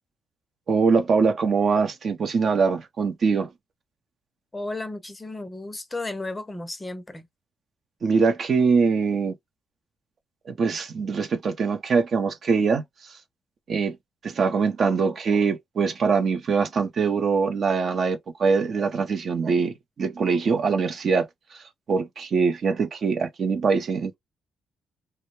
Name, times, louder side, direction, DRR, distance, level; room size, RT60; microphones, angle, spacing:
voice 1, 0.7-3.5 8.0-9.3 10.5-13.1 13.7-14.0 14.2-24.2, right 5 dB, 50° right, 0.5 m, -23 dB
voice 2, 4.5-7.3, left 2 dB, 20° left, 0.5 m, -34 dB
2.2 x 2.1 x 2.9 m
cardioid pair, 90°, 0 cm